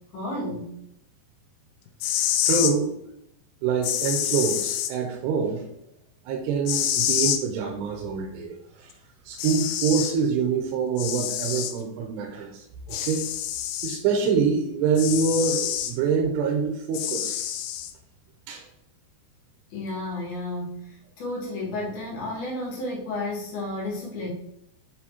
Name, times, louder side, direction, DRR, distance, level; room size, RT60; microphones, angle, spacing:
voice 1, 0.1-0.7 19.7-24.3, left 2 dB, 70° left, -4 dB, 3.6 m, -32 dB
sound 1, 1.9-2.7 3.8-4.9 6.7-7.4 8.9-9.0 9.4-10.2 11.0-11.7 12.9-14.0 15.0-15.9 16.9-17.9, left 11 dB, 85° left, 2.8 m, -27 dB
voice 2, 2.5-2.9 3.6-5.6 6.3-8.9 9.3-13.3 13.8-17.4 18.5-18.7, right 5 dB, 85° right, 1 dB, 2.9 m, -25 dB
8.7 x 4.3 x 2.9 m, 0.77 s
omnidirectional pair, 4.8 m